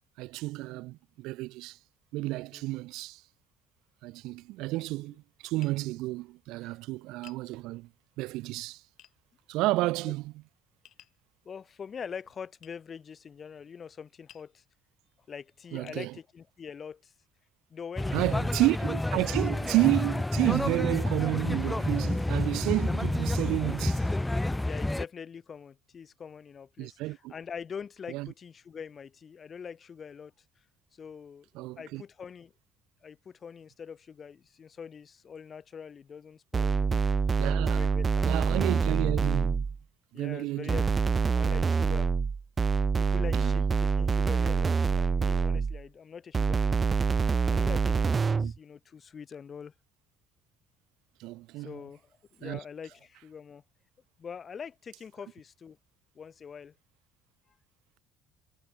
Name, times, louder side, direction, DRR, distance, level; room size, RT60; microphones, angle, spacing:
voice 1, 0.2-1.8 2.1-3.2 4.0-7.9 8.2-8.8 9.5-10.3 15.7-16.1 18.1-24.2 26.8-27.3 28.1-28.3 31.5-32.0 37.4-37.9 38.2-39.7 40.1-40.7 43.3-43.5 48.4-48.5 51.2-51.8 52.4-52.6, right 19 dB, 80° right, 1.1 m, -31 dB
Tap, 5.6-5.8 7.2-7.5 9.0-9.2 10.8-11.2 12.6-12.8 14.3-14.5 15.2-15.3 15.9-16.1, left 12 dB, 60° left, 3.3 m, -54 dB
voice 2, 11.4-14.6 15.3-17.1 17.7-18.4 19.1-19.4 24.6-30.3 30.9-31.5 31.8-32.5 33.0-37.2 37.7-38.3 40.1-40.9 41.3-42.1 43.0-46.8 47.5-49.7 51.6-53.6 54.2-55.8 56.1-56.7, left 6 dB, 35° left, 4.4 m, -44 dB
sound 1, 18.0-25.0, left 1 dB, 10° left, 1.1 m, -29 dB
sound 2, 36.5-39.8 40.7-45.8 46.3-48.6, right 5 dB, 30° right, 0.4 m, -26 dB
cardioid pair, 105°, 0 cm